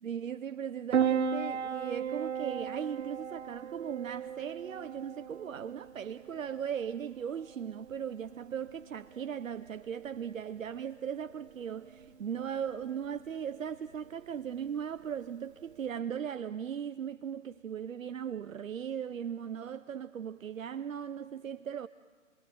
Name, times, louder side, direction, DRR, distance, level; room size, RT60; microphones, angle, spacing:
voice 1, 0.0-21.9, right 8 dB, 85° right, 0.8 m, -38 dB
Piano, 0.9-15.9, right 7 dB, 55° right, 1.5 m, -38 dB
sound 1, 9.1-9.4 9.6-9.9 10.2-11.6 11.8-12.1 12.3-12.6 12.9-13.2 13.4-13.7 14.0-14.2 14.5-14.8 15.0-15.3 15.6-15.8, right 5 dB, 10° right, 2.5 m, -60 dB
30.0 x 22.0 x 7.8 m
hypercardioid pair, 140°, 38 cm